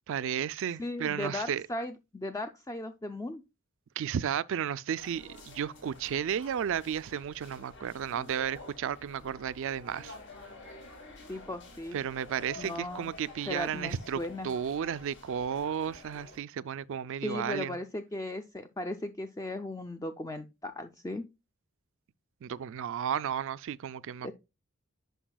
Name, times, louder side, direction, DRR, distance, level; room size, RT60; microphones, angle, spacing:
voice 1, 0.1-1.7 4.0-10.2 11.9-17.8 22.4-24.3, right 8 dB, 60° right, 0.3 m, -33 dB
voice 2, 0.8-3.4 11.3-12.0 12.6-13.1 13.5-14.5 17.2-21.2 24.2-24.3, left 1 dB, 15° left, 0.4 m, -37 dB
sound 1, 5.0-16.4, left 2 dB, 55° left, 2.1 m, -50 dB
9.9 x 5.4 x 2.2 m
head